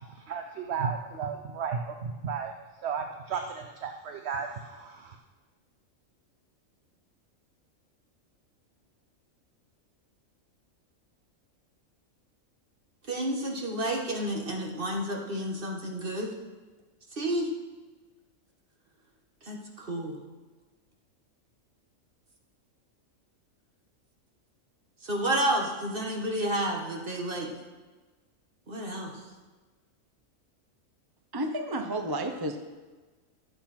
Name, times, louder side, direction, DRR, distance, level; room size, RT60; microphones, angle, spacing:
voice 1, 0.1-2.5 2.8-5.2, right 6 dB, 55° right, 4 dB, 0.9 m, -34 dB
voice 2, 13.1-16.3 17.2-17.5 19.4-20.2 25.0-27.5 28.7-29.1, right 1 dB, 40° right, 0 dB, 1.8 m, -30 dB
voice 3, 31.3-32.6, right 1 dB, 20° right, 5 dB, 0.8 m, -31 dB
17.0 x 7.9 x 4.4 m, 1.3 s
omnidirectional pair, 1.4 m